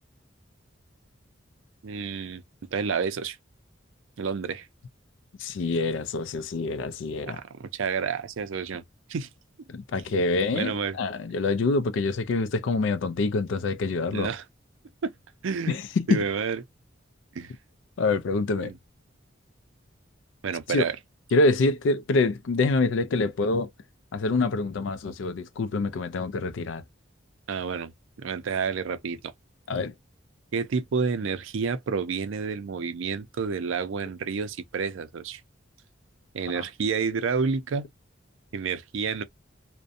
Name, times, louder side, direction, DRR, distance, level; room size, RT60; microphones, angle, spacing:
voice 1, 1.8-2.4 2.7-3.4 4.2-4.7 7.2-8.8 9.1-9.3 10.5-11.0 14.1-14.4 15.0-15.1 15.4-15.7 16.1-16.6 17.3-17.5 18.6-18.8 20.4-21.0 27.5-27.9 28.2-29.3 30.5-35.4 36.3-37.9 38.5-39.2, right 5 dB, 80° right, 0.4 m, -29 dB
voice 2, 5.4-7.4 9.7-14.3 15.7-16.2 18.0-18.7 20.7-20.8 21.3-23.7 24.1-26.8 29.7-29.9 36.5-36.6, left 3 dB, 70° left, 0.4 m, -26 dB
2.5 x 2.1 x 2.6 m
head